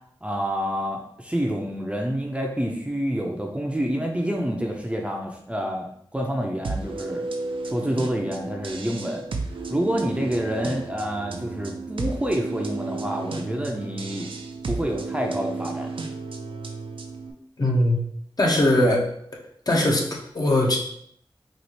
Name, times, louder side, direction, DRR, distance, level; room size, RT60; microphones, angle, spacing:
voice 1, 0.2-7.2 7.7-9.2 9.7-14.3 14.7-15.9 18.8-19.0, equal, 15° right, 1 dB, 0.5 m, -27 dB
sound 1, 6.6-17.3, right 3 dB, 75° right, 0.4 m, -33 dB
voice 2, 17.6-18.0 18.4-19.0 19.7-20.8, left 1 dB, 45° left, -1 dB, 0.8 m, -20 dB
4.1 x 2.4 x 3.0 m, 0.68 s
wide cardioid pair, 65°, 9 cm